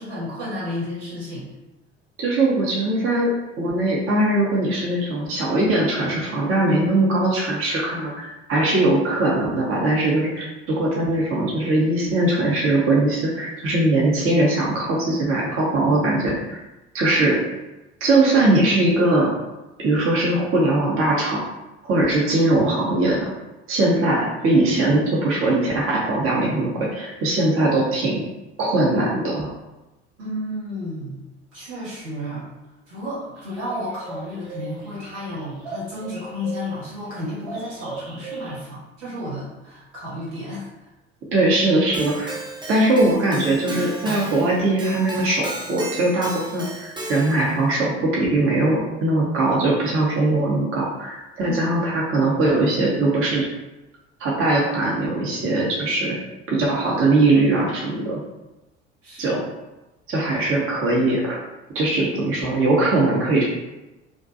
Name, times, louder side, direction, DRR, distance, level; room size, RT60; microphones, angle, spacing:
voice 1, 0.0-1.5 30.2-31.2 31.5-32.5 32.8-40.7 51.4-51.6 59.0-59.4, left 1 dB, 80° right, -9 dB, 1.3 m, -32 dB
voice 2, 2.2-3.3 3.6-16.6 16.9-17.4 18.0-19.3 19.8-21.4 21.8-23.3 23.7-28.2 28.6-29.5 41.3-42.4 42.7-53.4 54.2-56.2 56.5-58.2 59.2-59.4 60.1-61.4 61.7-63.4, right 2 dB, 40° right, -4 dB, 0.8 m, -20 dB
sound 1, 33.4-37.1 37.4-38.6, right 3 dB, 65° right, 1.0 m, -37 dB
Keyboard (musical), 41.9-47.6, right 2 dB, 15° right, 0.5 m, -34 dB
2.5 x 2.2 x 2.6 m, 1.0 s
figure-of-eight pair, 60°, 34 cm